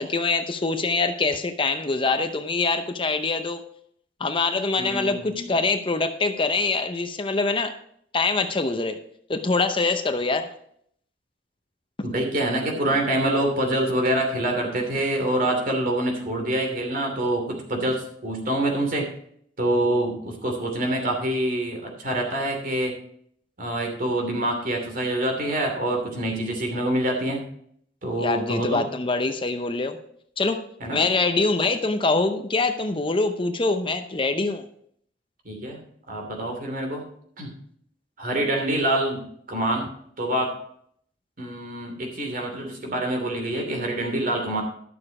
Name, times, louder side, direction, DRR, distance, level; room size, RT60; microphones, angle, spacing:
voice 1, 0.0-3.6 4.2-7.7 8.1-9.0 9.3-10.5 28.2-30.0 30.4-30.6 30.9-34.7, left 3 dB, 30° left, 8 dB, 0.7 m, -24 dB
voice 2, 4.8-5.4 12.0-19.1 19.6-22.9 23.6-27.4 28.0-28.8 30.8-31.0 35.4-35.8 36.1-37.0 37.4-37.5 38.2-39.9 40.2-40.6 41.4-44.6, right 1 dB, 50° right, 2 dB, 2.7 m, -26 dB
12.0 x 6.7 x 4.9 m, 0.66 s
head